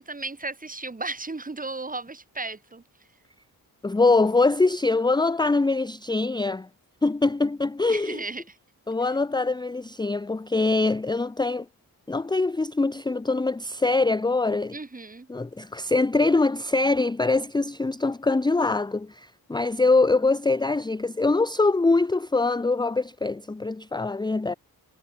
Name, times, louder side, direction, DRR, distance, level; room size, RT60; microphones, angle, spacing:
voice 1, 0.0-2.8 7.9-8.5 14.7-15.3, right 3 dB, 25° right, 3.3 m, -35 dB
voice 2, 3.8-6.7 7.0-8.2 8.9-11.7 12.1-14.7 15.3-24.5, left 3 dB, 10° left, 0.6 m, -23 dB
wide cardioid pair, 160°, 36 cm